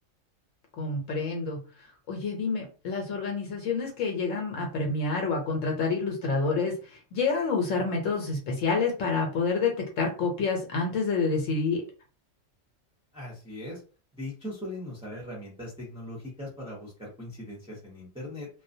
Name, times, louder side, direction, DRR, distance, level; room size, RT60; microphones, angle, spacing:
voice 1, 0.8-1.6 2.1-11.8, left 4 dB, 80° left, 1 dB, 1.0 m, -28 dB
voice 2, 13.1-13.8 14.1-18.5, left 1 dB, 5° right, -6 dB, 0.6 m, -39 dB
2.3 x 2.1 x 2.6 m, 0.36 s
omnidirectional pair, 1.3 m